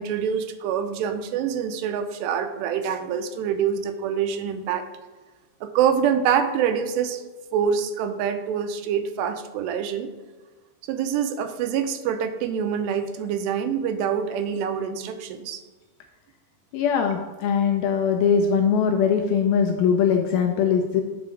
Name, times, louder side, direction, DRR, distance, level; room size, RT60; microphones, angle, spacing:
voice 1, 0.0-4.9 5.6-7.2 7.5-10.1 10.9-15.6, right 8 dB, 85° right, 8 dB, 2.8 m, -25 dB
voice 2, 16.7-21.0, left 7 dB, 80° left, 3 dB, 2.2 m, -21 dB
8.4 x 4.8 x 5.1 m, 1.3 s
omnidirectional pair, 4.8 m